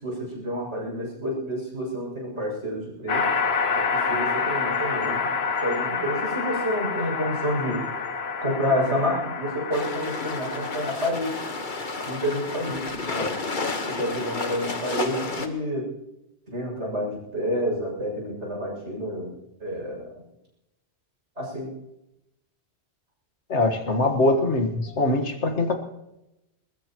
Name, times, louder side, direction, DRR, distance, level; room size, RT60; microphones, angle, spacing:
voice 1, 0.0-3.3 3.7-5.3 5.6-7.8 8.4-11.3 12.1-13.3 13.9-15.9 16.5-19.3 19.6-20.1 21.4-21.7, equal, 85° right, -2 dB, 7.6 m, -29 dB
sound 1, 3.1-10.9, left 5 dB, 65° left, 1.4 m, -28 dB
sound 2, 9.7-15.5, left 3 dB, 45° left, 1.5 m, -31 dB
voice 2, 23.5-24.7 25.0-25.8, left 2 dB, 85° left, 6 dB, 2.0 m, -22 dB
21.0 x 20.5 x 3.1 m, 0.90 s
omnidirectional pair, 1.1 m